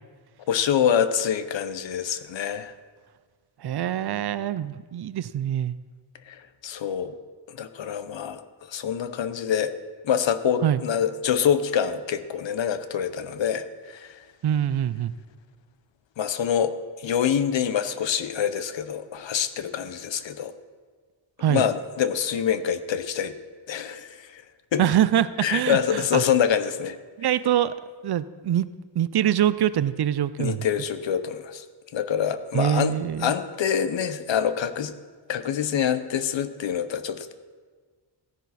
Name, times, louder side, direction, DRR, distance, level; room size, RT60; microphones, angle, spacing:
voice 1, 0.5-2.7 6.3-6.4 6.6-7.2 7.5-8.4 8.7-9.7 10.0-14.2 16.2-16.7 17.0-20.5 21.5-23.3 23.7-24.4 24.7-24.8 25.4-27.0 30.4-31.6 31.9-34.9 35.3-37.3, left 8 dB, 75° left, 11 dB, 0.9 m, -25 dB
voice 2, 3.6-5.8 10.6-10.8 14.4-15.1 21.4-21.6 24.8-26.2 27.2-27.7 28.0-28.7 29.0-30.6 32.5-33.3, right 11 dB, 60° right, 15 dB, 0.5 m, -24 dB
16.0 x 10.5 x 4.1 m, 1.5 s
wide cardioid pair, 140°, 45 cm